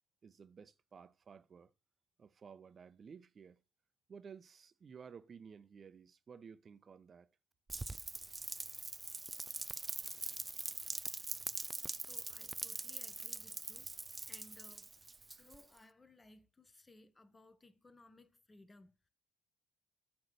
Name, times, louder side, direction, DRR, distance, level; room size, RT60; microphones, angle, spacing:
voice 1, 0.2-1.7 2.2-3.6 4.1-7.3, right 6 dB, 45° right, 0.7 m, -55 dB
Rain, 7.7-15.8, right 3 dB, 20° right, 0.3 m, -43 dB
voice 2, 12.0-14.9 15.3-19.1, left 2 dB, 20° left, 1.0 m, -62 dB
8.8 x 3.3 x 6.7 m
hypercardioid pair, 60°, 0 cm